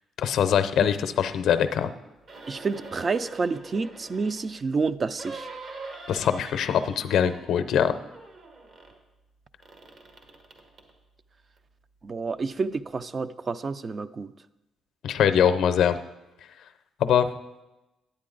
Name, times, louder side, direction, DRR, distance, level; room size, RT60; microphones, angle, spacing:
voice 1, 0.2-1.9 6.1-7.9 15.0-16.0 17.0-17.3, left 8 dB, 75° left, 10 dB, 0.5 m, -22 dB
sound 1, 2.2-4.5 5.2-7.7 7.9-9.0 9.6-10.9 11.6-11.7, right 3 dB, 55° right, 1.5 m, -44 dB
voice 2, 2.5-5.5 12.0-14.3, right 4 dB, 40° right, 13 dB, 0.4 m, -29 dB
10.5 x 8.4 x 3.8 m, 1.0 s
cardioid pair, 80°, 0 cm